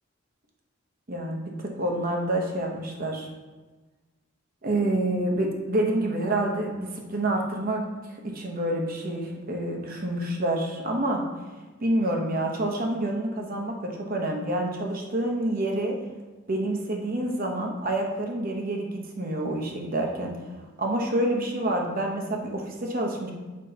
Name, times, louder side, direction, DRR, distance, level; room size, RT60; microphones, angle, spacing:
voice 1, 1.1-3.3 4.6-7.8 8.1-11.2 11.8-16.0 16.5-20.3 20.8-23.3, right 1 dB, 45° right, 1 dB, 1.0 m, -28 dB
7.4 x 5.3 x 2.9 m, 1.2 s
head